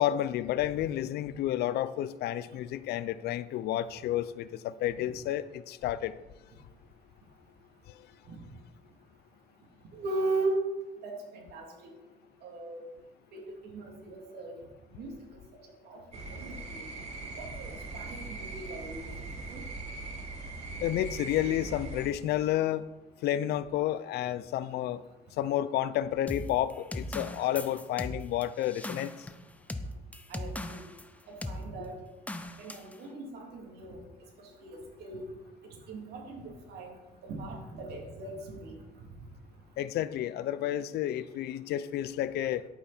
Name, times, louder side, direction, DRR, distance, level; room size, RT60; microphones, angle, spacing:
voice 1, 0.0-6.2 20.8-22.9 23.2-25.0 25.4-29.1 39.8-42.6, left 12 dB, 75° left, 16 dB, 0.6 m, -30 dB
voice 2, 9.9-10.6 11.0-11.6 12.4-12.8 13.3-13.4 13.7-14.5 15.0-15.1 15.9-16.0 16.3-16.9 17.4-17.7 17.9-19.1 19.5-19.6 30.3-30.8 31.3-31.9 32.6-34.0 34.6-35.3 35.9-36.4 36.7-36.9 37.2-38.7, right 2 dB, 70° right, 0 dB, 3.2 m, -37 dB
sound 1, 16.1-22.1, right 3 dB, 40° right, 3.0 m, -40 dB
sound 2, 26.3-31.1 31.4-31.6 32.3-32.9, left 1 dB, 10° left, 0.7 m, -38 dB
11.0 x 9.0 x 4.4 m, 1.1 s
cardioid pair, 110°, 17 cm